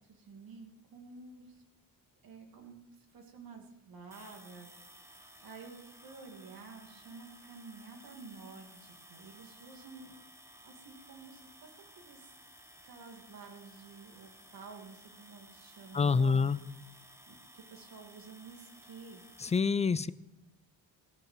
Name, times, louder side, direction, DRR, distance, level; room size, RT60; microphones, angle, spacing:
voice 1, 0.0-1.6 2.2-4.7 5.1-10.1 10.6-11.7 12.0-12.3 12.8-16.5 17.0-19.2, right 4 dB, 75° right, 2 dB, 2.6 m, -51 dB
sound 1, 4.1-19.6, right 1 dB, 10° right, 1.3 m, -56 dB
voice 2, 15.9-16.6 19.4-20.1, left 5 dB, 20° left, 17 dB, 0.4 m, -27 dB
15.5 x 7.3 x 7.6 m, 0.94 s
cardioid pair, 105°, 35 cm